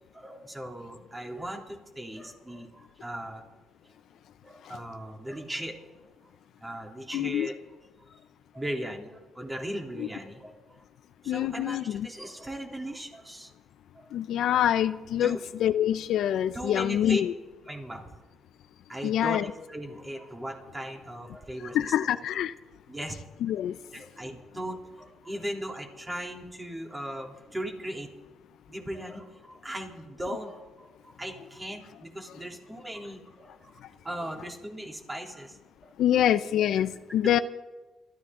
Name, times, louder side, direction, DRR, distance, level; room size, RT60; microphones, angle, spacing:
voice 1, 0.1-3.4 3.8-3.9 4.4-7.5 8.5-10.8 11.2-13.5 13.9-14.1 14.5-14.6 15.2-15.4 16.5-17.2 17.7-18.1 18.9-19.4 19.7-21.9 22.9-23.1 23.9-28.1 28.7-36.2 37.2-37.3, right 1 dB, 15° right, 3.4 m, -38 dB
voice 2, 7.1-7.5 10.0-10.1 11.3-12.1 14.1-17.3 19.0-19.5 21.7-22.5 23.4-23.8 36.0-37.4, left 11 dB, 75° left, 0.6 m, -26 dB
28.0 x 13.5 x 3.8 m
cardioid pair, 90°, 0 cm